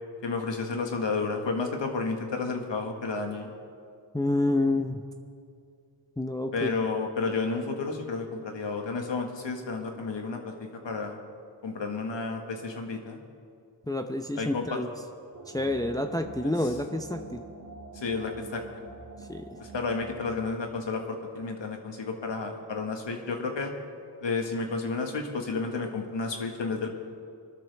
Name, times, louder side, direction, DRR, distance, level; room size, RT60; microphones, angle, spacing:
voice 1, 0.2-3.5 6.5-11.2 11.6-13.2 14.4-14.8 17.9-18.6 19.6-23.7 24.2-26.9, left 4 dB, 85° left, 3 dB, 1.7 m, -31 dB
voice 2, 4.1-5.1 6.2-6.7 13.9-14.9 15.5-17.4 19.2-19.6, left 2 dB, 10° left, 5 dB, 0.7 m, -28 dB
sound 1, 15.3-20.6, right 3 dB, 60° right, 2.6 m, -46 dB
23.0 x 12.5 x 3.5 m, 2.4 s
wide cardioid pair, 65°, 43 cm